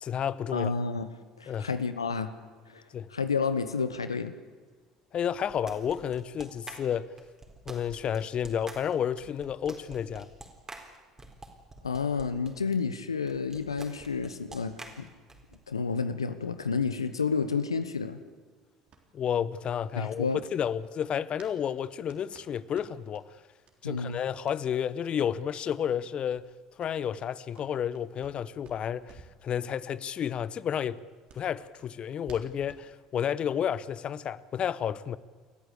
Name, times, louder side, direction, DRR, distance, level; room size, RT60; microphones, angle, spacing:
voice 1, 0.0-0.7 1.5-1.7 2.9-3.1 5.1-7.1 7.7-10.3 19.1-23.2 23.8-26.4 26.8-31.0 31.3-35.2, left 8 dB, 40° left, 0.8 m, -31 dB
voice 2, 0.5-2.3 2.7-2.8 3.1-4.3 11.8-15.1 15.7-18.2 19.9-20.4 23.8-24.2, left 5 dB, 85° left, 1.0 m, -30 dB
sound 1, 5.4-12.5 13.3-15.6, right 2 dB, 20° right, 4.2 m, -47 dB
sound 2, 18.9-21.6 21.8-23.2 23.6-23.8 24.1-24.6 25.0-25.2 25.5-25.6 25.8-26.0 26.3-28.4 28.6-29.4 29.7-29.8 30.2-30.3 30.7-32.9, right 5 dB, 45° right, 3.7 m, -56 dB
28.5 x 14.0 x 8.3 m
figure-of-eight pair, 60°, 3 cm